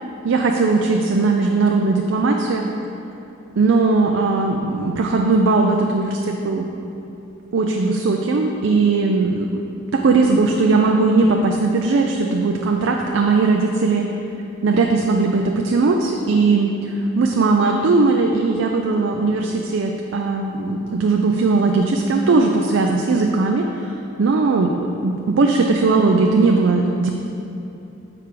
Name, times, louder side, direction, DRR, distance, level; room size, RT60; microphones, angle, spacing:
voice 1, 0.2-2.7 3.6-6.7 7.5-9.6 9.9-14.1 14.6-27.1, right 3 dB, 75° right, 2 dB, 0.4 m, -18 dB
6.6 x 4.8 x 4.6 m, 2.8 s
head